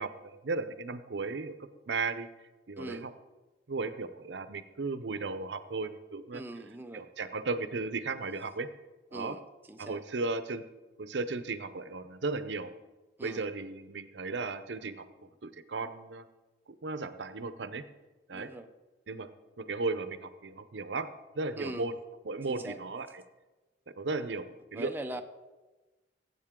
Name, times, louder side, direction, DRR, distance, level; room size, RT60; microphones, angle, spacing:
voice 1, 0.0-2.3 2.7-3.1 3.7-6.4 6.9-8.7 9.1-9.4 9.8-10.7 11.0-12.7 13.2-15.0 15.4-16.2 16.8-17.8 18.3-18.5 19.1-19.3 19.6-21.1 21.4-22.0 22.2-23.2 24.0-24.9, right 3 dB, 85° right, 12 dB, 0.7 m, -35 dB
voice 2, 2.8-3.1 6.3-7.1 9.1-9.4 9.7-10.0 13.2-13.5 18.3-18.7 21.6-21.9 22.5-22.8 24.7-25.2, right 1 dB, 10° right, 5 dB, 0.5 m, -41 dB
17.0 x 8.3 x 3.7 m, 1.2 s
head